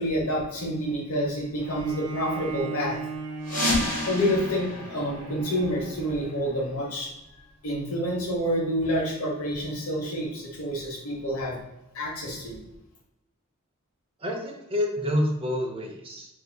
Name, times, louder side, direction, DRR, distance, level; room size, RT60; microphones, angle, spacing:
voice 1, 0.0-3.0 4.1-7.1 7.6-11.6 11.9-12.6, equal, 85° left, -1 dB, 1.0 m, -28 dB
Bowed string instrument, 1.6-6.8, right 4 dB, 70° right, 0.8 m, -37 dB
sound 1, 3.4-6.0, left 1 dB, 40° left, 1.3 m, -30 dB
voice 2, 14.2-16.3, left 1 dB, 25° right, 0 dB, 0.6 m, -28 dB
4.5 x 2.7 x 2.2 m, 0.90 s
head